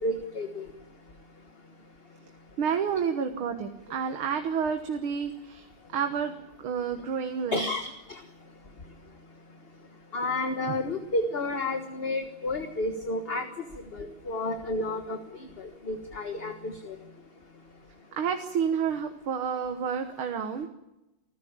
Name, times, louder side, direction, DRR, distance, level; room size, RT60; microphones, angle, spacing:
voice 1, 0.0-0.7 7.5-8.2 10.1-13.5 13.9-15.2 15.6-16.9, left 2 dB, 30° left, 7 dB, 1.4 m, -31 dB
voice 2, 2.6-5.7 5.9-7.7 18.2-20.7, right 7 dB, 80° right, 6 dB, 2.2 m, -30 dB
25.0 x 15.0 x 8.8 m, 0.96 s
omnidirectional pair, 2.3 m